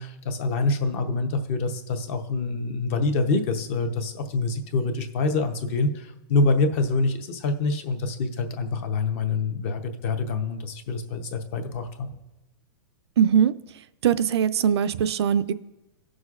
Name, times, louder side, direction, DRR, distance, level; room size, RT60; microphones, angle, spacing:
voice 1, 0.0-12.1, left 3 dB, 30° left, 7 dB, 0.7 m, -26 dB
voice 2, 13.2-13.5 14.0-15.5, right 8 dB, 80° right, 13 dB, 0.4 m, -21 dB
18.5 x 6.2 x 2.4 m, 1.0 s
supercardioid pair, 175°, 13 cm